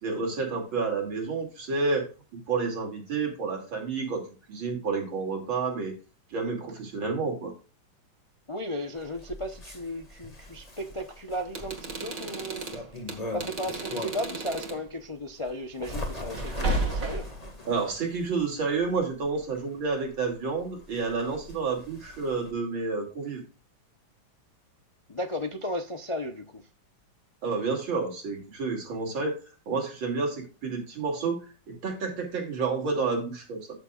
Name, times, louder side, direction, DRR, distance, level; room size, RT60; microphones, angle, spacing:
voice 1, 0.0-2.1 2.3-5.9 6.3-7.5 17.7-23.4 27.4-29.4 29.7-31.4 31.7-33.6, right 4 dB, 75° right, 3.5 m, -30 dB
voice 2, 8.5-12.7 13.3-17.3 25.1-26.6, left 1 dB, 45° left, 0.4 m, -35 dB
Bird, 9.0-14.4 14.8-22.5, left 1 dB, 20° left, 2.0 m, -41 dB
sound 1, 11.5-14.8 16.3-17.4, right 2 dB, 45° right, 2.1 m, -33 dB
12.5 x 6.8 x 2.4 m
omnidirectional pair, 2.2 m